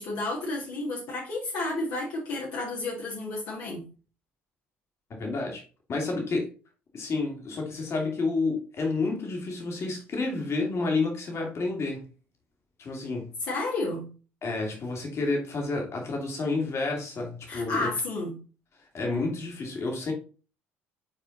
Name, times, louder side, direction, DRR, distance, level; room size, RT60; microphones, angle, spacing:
voice 1, 0.0-3.8 13.4-14.1 17.5-18.4, left 2 dB, 60° left, 1.8 m, -31 dB
voice 2, 5.2-5.6 5.9-6.5 6.9-12.1 12.8-13.3 14.4-17.9 18.9-20.1, left 3 dB, 45° left, 2.2 m, -30 dB
5.5 x 4.4 x 4.0 m
figure-of-eight pair, 55°, 7 cm